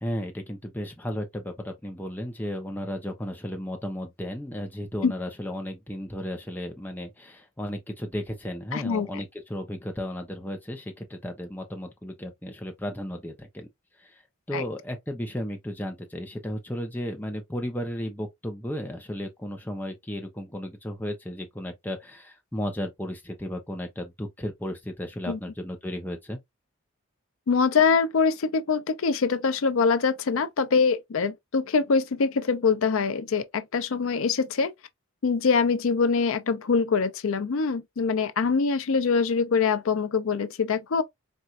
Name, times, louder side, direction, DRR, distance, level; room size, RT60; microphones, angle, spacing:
voice 1, 0.0-13.7 14.0-14.2 14.5-26.4, equal, 10° left, 0.7 m, -34 dB
voice 2, 8.7-9.2 14.5-14.6 25.3-25.4 27.5-34.7 35.2-41.0, left 5 dB, 75° left, 0.5 m, -24 dB
4.4 x 2.5 x 2.4 m
head